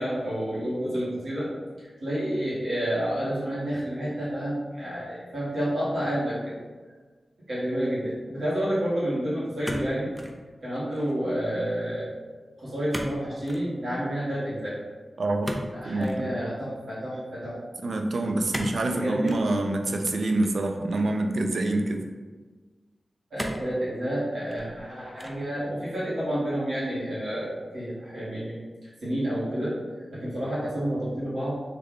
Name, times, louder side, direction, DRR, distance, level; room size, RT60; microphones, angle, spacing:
voice 1, 0.0-1.5 2.0-6.6 7.5-10.1 10.6-12.1 12.6-14.8 15.7-17.6 18.9-19.3 23.3-29.8 30.1-31.6, equal, 85° right, -10 dB, 1.4 m, -29 dB
sound 1, 9.6-10.4 10.8-11.2 12.9-13.2 13.4-13.7 15.4-16.2 18.5-18.8 19.3-19.5 20.4-21.2 21.9-22.0 23.4-23.7 24.3-24.8 25.2-25.5, equal, ahead, 0.3 m, -35 dB
voice 2, 15.2-15.5 15.9-16.3 17.8-22.0, right 2 dB, 70° right, 4 dB, 0.4 m, -26 dB
3.2 x 2.3 x 3.5 m, 1.4 s
wide cardioid pair, 110°, 0 cm